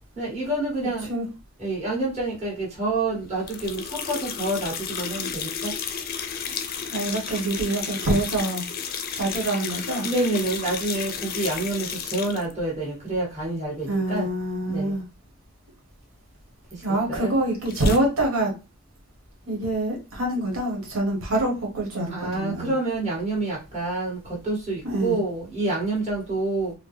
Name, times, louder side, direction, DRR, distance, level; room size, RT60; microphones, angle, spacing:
voice 1, 0.2-1.1 1.6-5.7 10.0-14.3 14.7-15.0 16.7-16.8 17.1-17.3 22.1-26.7, right 2 dB, 30° right, 1.8 m, -28 dB
sound 1, 3.5-12.5 17.7-18.0, left 7 dB, 45° left, 0.5 m, -32 dB
voice 2, 6.9-8.6 9.2-10.1 13.8-15.0 16.8-18.5 19.5-22.7 24.8-25.2, right 1 dB, 75° right, 1.2 m, -25 dB
4.3 x 2.0 x 3.2 m
head